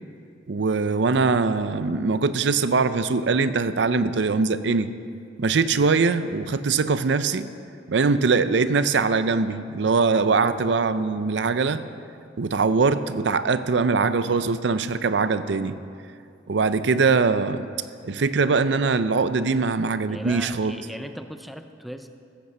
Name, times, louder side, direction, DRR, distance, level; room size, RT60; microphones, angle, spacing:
voice 1, 0.5-4.9 5.4-7.5 7.9-11.8 12.4-15.8 16.5-17.7 18.0-20.7, right 4 dB, 70° right, 13 dB, 0.5 m, -22 dB
voice 2, 20.1-22.1, equal, ahead, 7 dB, 0.5 m, -37 dB
15.0 x 8.0 x 6.8 m, 2.4 s
head